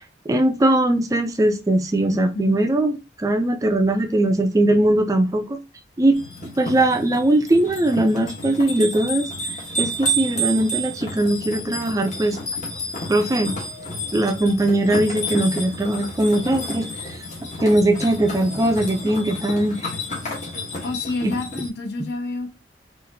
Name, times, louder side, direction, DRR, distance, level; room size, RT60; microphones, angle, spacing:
voice 1, 0.3-5.6 6.0-9.3 9.8-12.4 13.1-13.5 14.1-17.2 17.6-19.8 21.2-21.3, right 1 dB, 20° right, 0.3 m, -20 dB
voice 2, 2.1-2.6 20.8-22.5, left 2 dB, 65° left, 0.9 m, -29 dB
sound 1, 6.1-21.7, right 1 dB, 40° left, 1.1 m, -30 dB
4.0 x 2.4 x 2.7 m
head